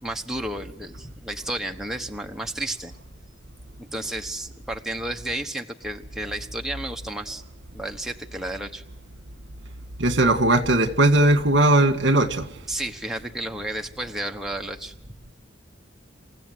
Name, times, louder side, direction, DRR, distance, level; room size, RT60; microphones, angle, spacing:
voice 1, 0.0-2.9 3.9-7.4 7.7-8.8 12.7-14.9, right 1 dB, ahead, 2 dB, 1.1 m, -32 dB
voice 2, 10.0-12.5, right 2 dB, 70° right, 9 dB, 1.9 m, -18 dB
28.0 x 15.5 x 9.6 m, 0.75 s
head